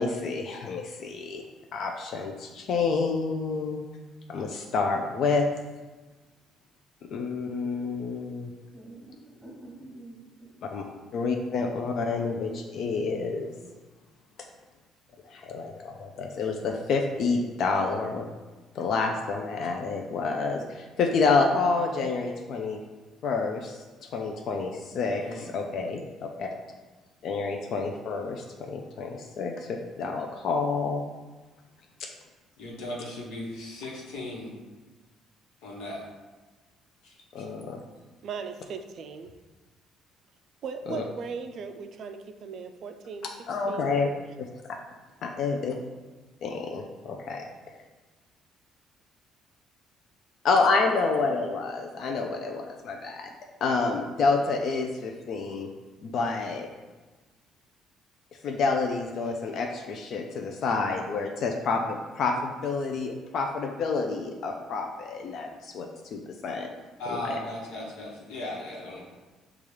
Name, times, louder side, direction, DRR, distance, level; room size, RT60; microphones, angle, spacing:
voice 1, 0.0-1.4 1.7-3.8 4.3-5.5 7.1-8.5 10.7-10.8 11.1-13.5 15.3-18.3 18.8-22.8 23.2-23.8 24.1-26.0 26.4-26.5 27.2-31.0 32.0-32.1 37.3-37.8 40.9-41.0 43.5-44.1 44.4-44.5 45.2-45.8 46.4-47.4 50.4-53.3 53.6-55.7 56.0-56.7 58.4-66.7 67.1-67.4, left 4 dB, 55° left, 2 dB, 0.4 m, -28 dB
voice 2, 8.7-11.0, right 2 dB, 10° right, -3 dB, 1.1 m, -48 dB
voice 3, 24.9-25.5 32.6-34.5 35.6-36.0 37.0-37.1 67.0-69.0, left 1 dB, 90° left, -3 dB, 1.1 m, -37 dB
voice 4, 38.2-39.3 40.6-43.3 43.7-44.0, right 5 dB, 50° right, 7 dB, 0.3 m, -38 dB
5.3 x 2.4 x 3.2 m, 1.2 s
cardioid pair, 135°, 0 cm